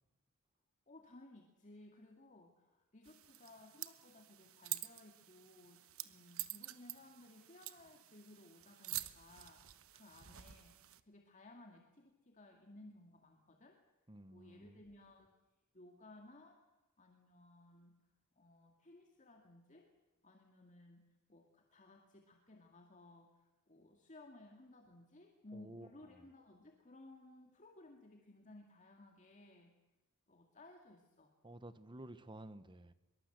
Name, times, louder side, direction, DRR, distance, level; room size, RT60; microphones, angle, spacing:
voice 1, 0.9-10.8 11.0-13.8 14.3-15.3 15.7-16.6 17.0-17.9 18.4-19.9 20.2-21.0 21.3-29.7 30.3-31.3, left 2 dB, 35° left, 3 dB, 2.2 m, -59 dB
sound 1, 3.0-11.0, right 15 dB, 65° right, 1.1 m, -48 dB
voice 2, 14.1-14.8 25.5-25.9 31.4-32.9, right 1 dB, 20° right, 13 dB, 1.1 m, -52 dB
24.0 x 22.5 x 8.0 m, 1.0 s
head